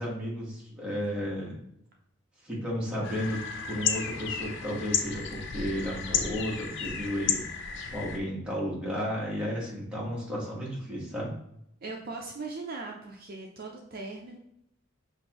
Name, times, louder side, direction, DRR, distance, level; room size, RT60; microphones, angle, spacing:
voice 1, 0.0-1.6 2.4-3.4 3.7-11.4, equal, 5° right, -6 dB, 1.3 m, -33 dB
sound 1, 3.0-8.2, left 6 dB, 60° left, 0.5 m, -32 dB
voice 2, 11.8-14.4, right 3 dB, 45° right, 0 dB, 0.5 m, -39 dB
6.5 x 2.6 x 2.9 m, 0.78 s
head